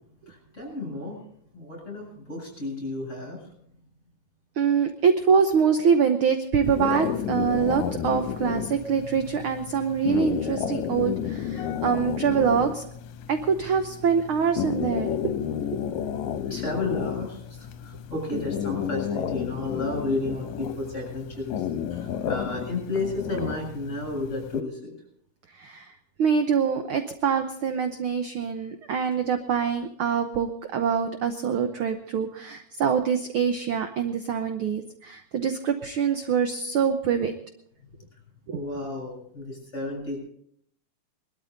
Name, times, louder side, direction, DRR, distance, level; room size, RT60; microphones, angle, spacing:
voice 1, 0.3-1.2 1.5-3.5 15.8-24.9 38.5-40.2, left 2 dB, 20° left, 0 dB, 7.7 m, -32 dB
voice 2, 4.6-12.9 13.3-15.4 15.7-15.8 25.6-25.9 26.2-37.3 38.5-38.6, right 6 dB, 70° right, 7 dB, 1.3 m, -24 dB
sound 1, 6.6-24.6, left 9 dB, 80° left, 2.1 m, -32 dB
21.5 x 13.0 x 4.0 m, 0.67 s
omnidirectional pair, 3.3 m